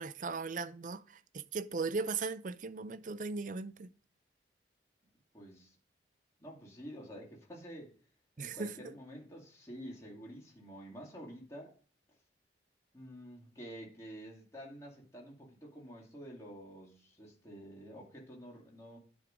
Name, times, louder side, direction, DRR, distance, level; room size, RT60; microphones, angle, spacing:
voice 1, 0.0-3.9 8.4-8.9, right 4 dB, 45° right, 0.5 m, -38 dB
voice 2, 5.3-5.8 6.4-7.9 8.4-11.7 12.9-19.0, equal, 15° left, 2.2 m, -49 dB
10.5 x 3.6 x 5.0 m
head